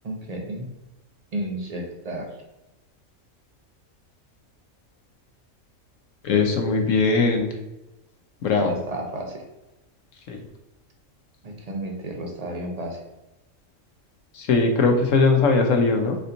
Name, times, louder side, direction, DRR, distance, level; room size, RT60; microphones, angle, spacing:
voice 1, 0.0-0.7 1.3-2.3 8.6-9.4 11.4-13.0, right 1 dB, 35° right, 1 dB, 0.7 m, -32 dB
voice 2, 6.2-7.5 8.4-8.7 10.3-10.4 14.4-16.2, left 4 dB, 70° left, 4 dB, 1.0 m, -20 dB
4.2 x 3.9 x 2.7 m, 0.98 s
omnidirectional pair, 1.4 m